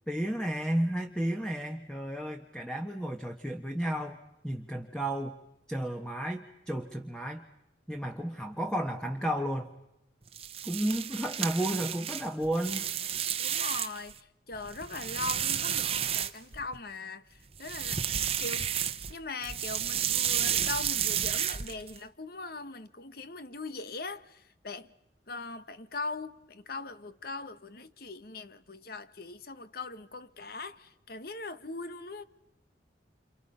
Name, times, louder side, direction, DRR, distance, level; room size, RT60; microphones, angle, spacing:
voice 1, 0.1-5.4 5.7-7.5 7.9-9.7 10.6-12.8, right 1 dB, 5° left, 1.3 m, -32 dB
sound 1, 10.3-14.1 14.5-16.8 17.5-19.2 19.4-22.0, right 9 dB, 35° right, 1.0 m, -31 dB
voice 2, 13.4-18.7 19.1-24.9 25.3-32.2, left 3 dB, 55° left, 1.3 m, -40 dB
28.5 x 28.5 x 5.7 m
head